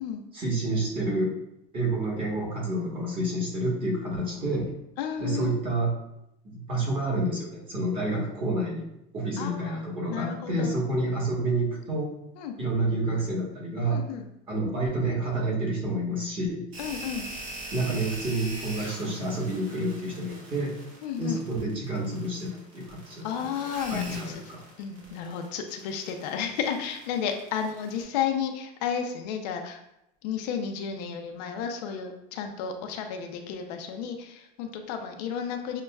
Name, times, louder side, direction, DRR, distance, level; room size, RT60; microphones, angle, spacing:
voice 1, 0.3-1.4 1.7-4.7 5.2-5.9 6.4-8.9 9.1-12.1 12.6-14.0 14.5-16.6 17.7-20.7 21.2-23.3 23.9-24.6, right 1 dB, 25° right, -4 dB, 1.2 m, -29 dB
voice 2, 5.0-5.5 9.4-9.8 10.1-10.7 12.4-12.6 13.9-14.2 16.8-17.3 21.0-21.4 23.2-24.4 24.8-29.8 30.2-35.8, left 7 dB, 80° left, 4 dB, 0.6 m, -32 dB
sound 1, 16.7-28.0, right 1 dB, 40° right, 1.4 m, -42 dB
6.4 x 2.2 x 2.3 m, 0.83 s
supercardioid pair, 150°, 21 cm